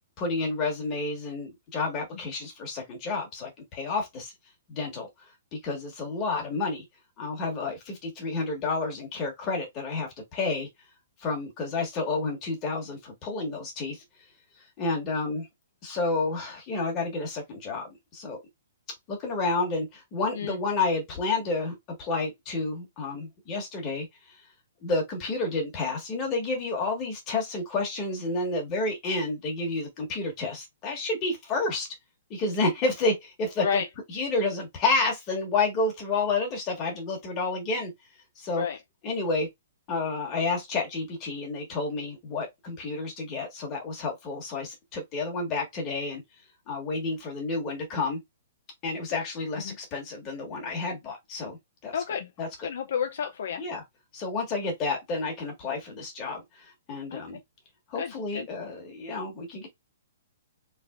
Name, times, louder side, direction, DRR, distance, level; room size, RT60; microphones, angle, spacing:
voice 1, 0.2-4.3 4.7-5.1 5.5-6.8 7.2-10.7 11.2-14.0 14.8-15.5 15.8-18.4 19.1-24.1 24.8-31.9 32.3-33.8 34.1-37.9 38.4-38.6 39.0-39.5 39.9-46.2 46.7-48.2 48.8-51.6 51.8-51.9 52.4-52.5 53.6-53.8 54.1-57.4 57.9-59.7, left 3 dB, 20° left, 1.5 m, -30 dB
voice 2, 51.9-52.3 52.6-53.6 57.1-57.2 57.9-58.5, left 7 dB, 55° left, 0.5 m, -30 dB
3.7 x 3.4 x 2.4 m
hypercardioid pair, 175°, 0 cm